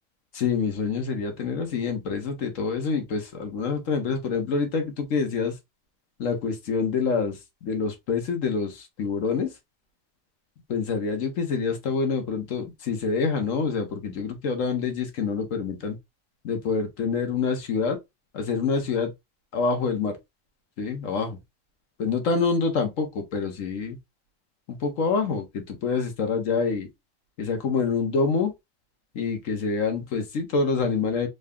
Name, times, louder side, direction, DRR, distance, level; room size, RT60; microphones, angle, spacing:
voice 1, 0.3-5.5 6.2-9.5 10.7-16.0 16.4-18.0 18.3-19.1 19.5-20.2 20.8-21.4 22.0-24.0 24.7-26.9 27.4-28.5 29.1-31.3, left 5 dB, 80° left, 1.4 m, -26 dB
3.9 x 2.2 x 3.6 m
omnidirectional pair, 1.3 m